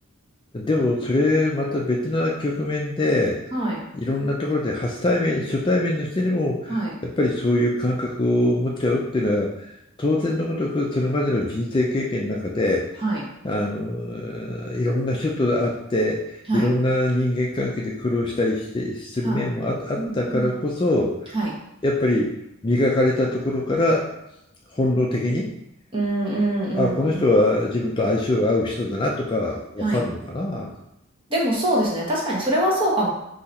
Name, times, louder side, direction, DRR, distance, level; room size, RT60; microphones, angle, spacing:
voice 1, 0.5-3.4 3.9-9.7 10.0-12.8 13.4-21.2 21.8-22.3 22.6-24.0 24.7-25.5 26.8-30.7, left 1 dB, 25° left, -1 dB, 0.4 m, -23 dB
voice 2, 20.0-20.6 21.3-21.5 25.9-27.2 29.8-30.0 31.3-33.1, right 1 dB, 25° right, -5 dB, 1.2 m, -24 dB
3.9 x 2.8 x 4.1 m, 0.83 s
head